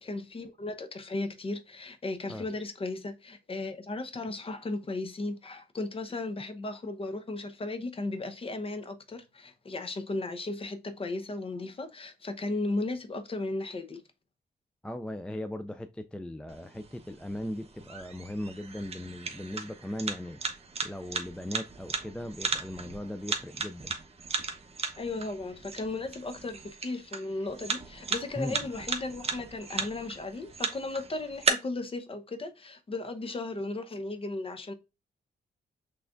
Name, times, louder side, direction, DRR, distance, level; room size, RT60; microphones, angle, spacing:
voice 1, 0.0-14.0 25.0-34.7, left 2 dB, 35° left, 0.8 m, -36 dB
voice 2, 14.8-20.5 20.8-23.9 28.4-28.7, left 1 dB, 5° left, 0.3 m, -38 dB
sound 1, 16.5-31.5, right 4 dB, 40° right, 1.0 m, -36 dB
6.0 x 3.3 x 2.5 m
cardioid pair, 115°, 17 cm